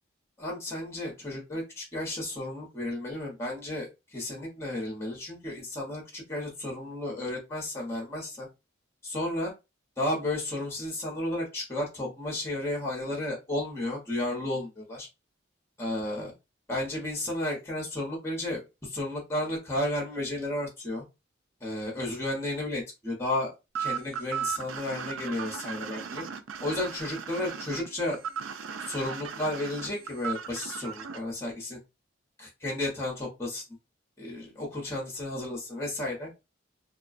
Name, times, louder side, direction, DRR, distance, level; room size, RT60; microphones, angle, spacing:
voice 1, 0.4-8.5 9.0-9.5 10.0-15.1 15.8-16.3 16.7-21.0 21.6-23.5 23.8-26.2 26.6-28.2 28.8-31.8 32.4-33.6 34.2-36.3, left 1 dB, 15° left, -1 dB, 0.9 m, -33 dB
sound 1, 23.7-31.2, right 7 dB, 80° right, 0.4 m, -36 dB
2.4 x 2.2 x 2.4 m, 0.25 s
head